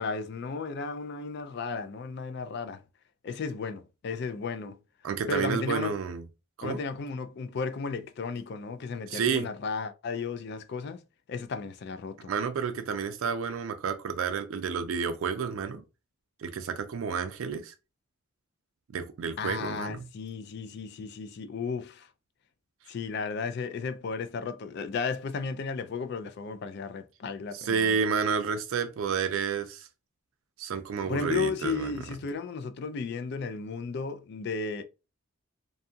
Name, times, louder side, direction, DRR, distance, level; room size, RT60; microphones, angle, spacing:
voice 1, 0.0-2.8 3.2-4.8 5.3-6.0 6.6-11.0 11.3-12.3 19.4-22.1 22.9-28.0 31.0-34.8, left 4 dB, 50° left, 0.3 m, -34 dB
voice 2, 5.0-6.2 6.6-6.8 9.1-9.5 12.3-15.8 16.4-17.7 18.9-20.0 27.5-29.9 30.6-31.9, right 6 dB, 70° right, 0.4 m, -30 dB
2.6 x 2.3 x 2.6 m
head